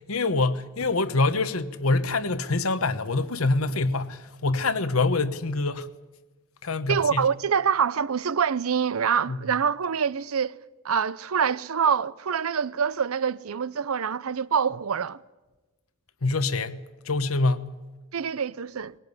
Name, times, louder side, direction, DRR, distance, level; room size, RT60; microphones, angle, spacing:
voice 1, 0.0-5.9 6.6-7.2 9.3-9.4 16.2-17.7, left 3 dB, 85° left, 1.2 m, -25 dB
voice 2, 6.9-10.6 10.8-15.2 18.1-18.9, right 7 dB, 85° right, 0.6 m, -25 dB
20.5 x 17.5 x 9.6 m
head